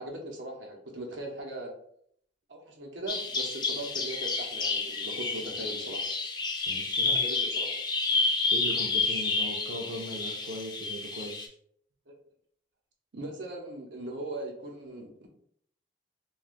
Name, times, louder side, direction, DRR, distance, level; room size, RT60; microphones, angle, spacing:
voice 1, 0.0-1.7 2.5-6.0 7.1-7.7 12.1-12.2 13.1-15.3, right 1 dB, 85° right, 1 dB, 0.7 m, -39 dB
Bird vocalization bird call bird song, 3.1-11.5, left 3 dB, 25° left, 0.4 m, -30 dB
voice 2, 6.7-7.2 8.5-11.5, right 1 dB, 60° right, -1 dB, 0.5 m, -39 dB
2.5 x 2.3 x 3.5 m, 0.66 s
head